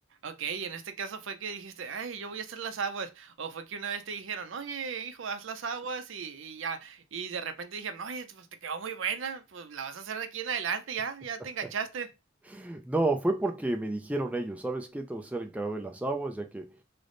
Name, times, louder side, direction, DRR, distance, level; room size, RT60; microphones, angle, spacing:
voice 1, 0.2-12.1, right 6 dB, 65° right, 0.5 m, -36 dB
voice 2, 12.5-16.8, right 2 dB, 5° right, 0.3 m, -31 dB
3.3 x 2.1 x 3.8 m
head